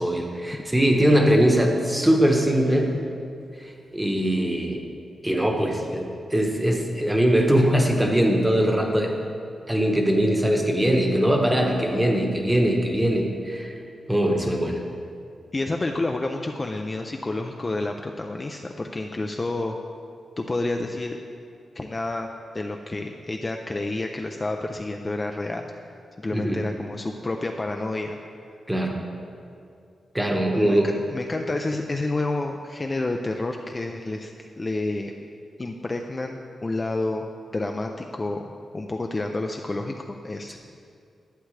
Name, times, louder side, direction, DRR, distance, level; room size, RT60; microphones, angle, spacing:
voice 1, 0.0-2.9 3.6-4.8 5.2-9.2 9.7-13.7 14.1-14.8 26.3-26.6 28.7-29.0 30.1-31.0, equal, 10° right, 1 dB, 1.0 m, -21 dB
voice 2, 15.5-19.8 20.4-21.2 21.8-22.3 22.5-25.7 26.2-28.2 30.5-35.3 35.6-37.3 37.5-40.6, left 2 dB, 25° left, 3 dB, 0.4 m, -29 dB
11.5 x 8.0 x 3.2 m, 2.4 s
wide cardioid pair, 120°, 0 cm